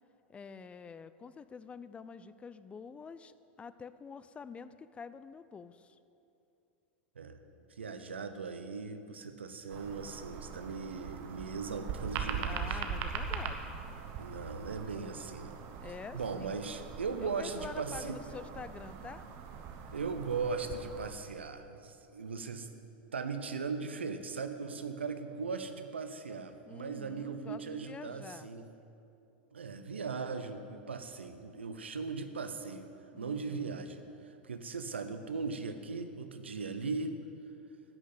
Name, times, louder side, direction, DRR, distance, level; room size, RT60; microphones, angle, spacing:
voice 1, 0.3-6.0 12.4-13.8 15.8-16.6 17.2-19.2 26.7-28.5 33.1-33.7, left 5 dB, 20° left, 14 dB, 0.4 m, -47 dB
voice 2, 7.8-13.0 14.2-15.7 16.1-18.2 19.9-22.7 23.1-28.7 29.5-37.2, right 4 dB, 85° right, 9 dB, 0.7 m, -38 dB
sound 1, 9.7-21.1, right 6 dB, 50° right, 1.1 m, -41 dB
11.0 x 6.4 x 7.8 m, 2.7 s
hypercardioid pair, 95°, 6 cm